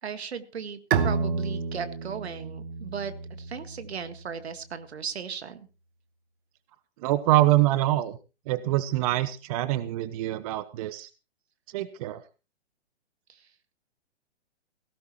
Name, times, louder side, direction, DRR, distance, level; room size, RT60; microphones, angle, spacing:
voice 1, 0.0-3.1 3.4-5.7 13.3-13.4, right 7 dB, 70° right, 10 dB, 1.9 m, -36 dB
Bowed string instrument, 0.9-4.4, right 5 dB, 50° right, 1.6 m, -30 dB
voice 2, 7.0-8.2 8.5-11.1 11.7-12.2, right 15 dB, 35° right, 15 dB, 0.8 m, -25 dB
18.0 x 16.0 x 3.0 m, 0.32 s
figure-of-eight pair, 125°, 34 cm